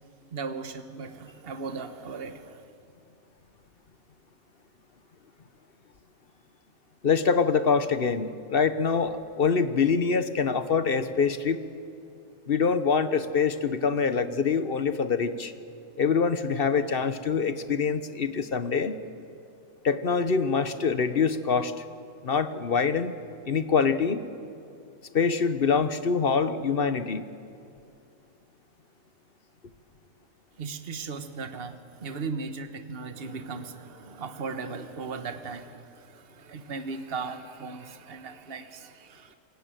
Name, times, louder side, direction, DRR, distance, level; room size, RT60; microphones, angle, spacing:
voice 1, 0.3-2.7 30.6-39.4, right 4 dB, 45° right, 8 dB, 1.5 m, -37 dB
voice 2, 7.0-11.6 12.5-15.5 16.0-19.0 19.8-21.7 22.2-23.1 23.4-24.2 25.1-27.3, left 5 dB, 45° left, 11 dB, 1.2 m, -25 dB
27.0 x 21.5 x 9.2 m, 2.5 s
omnidirectional pair, 1.5 m